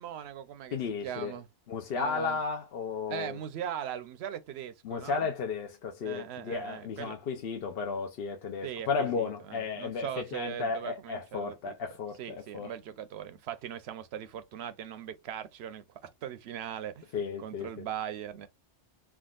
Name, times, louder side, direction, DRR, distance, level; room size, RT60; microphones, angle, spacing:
voice 1, 0.0-1.5 1.9-2.4 3.1-5.3 6.0-7.2 8.6-11.7 12.2-18.5, right 9 dB, 65° right, 0.8 m, -40 dB
voice 2, 0.7-1.3 1.7-3.4 4.8-12.7 17.1-17.7, left 5 dB, 60° left, 0.7 m, -34 dB
3.5 x 2.3 x 2.3 m
omnidirectional pair, 1.3 m